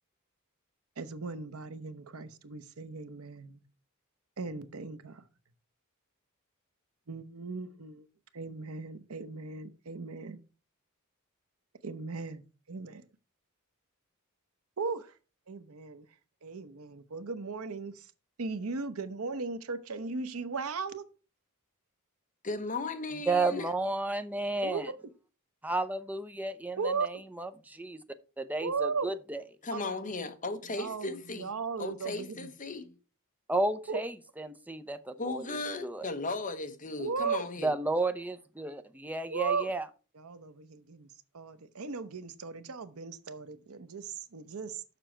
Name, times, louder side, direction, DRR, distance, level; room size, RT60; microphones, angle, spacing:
voice 1, 1.0-3.6 4.4-5.2 7.1-8.1 8.3-10.4 11.8-13.1 14.8-15.1 15.5-16.1 16.4-18.1 18.4-21.1 24.6-25.0 26.8-27.1 28.6-29.1 29.7-29.9 30.2-30.3 30.7-32.5 33.9-34.0 37.0-37.5 39.3-39.7 40.2-41.1 41.3-44.8, right 4 dB, 80° right, 0.8 m, -37 dB
voice 2, 22.4-23.6 29.6-31.5 31.8-32.9 35.2-37.7, left 3 dB, 35° left, 1.0 m, -36 dB
voice 3, 23.3-24.9 25.6-28.0 28.4-29.4 33.5-36.1 37.6-39.9, right 2 dB, 5° right, 0.6 m, -32 dB
6.8 x 6.2 x 4.4 m
head